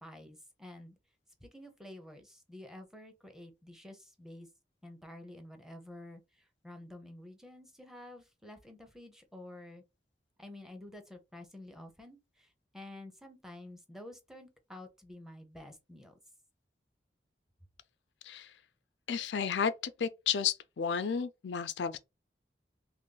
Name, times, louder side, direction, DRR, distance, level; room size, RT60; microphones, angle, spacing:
voice 1, 0.0-1.0 1.4-4.5 4.8-9.8 10.4-16.2, left 1 dB, 5° right, 0.6 m, -50 dB
voice 2, 19.1-19.7 20.0-22.0, left 7 dB, 90° left, 0.4 m, -32 dB
3.0 x 2.5 x 3.8 m
head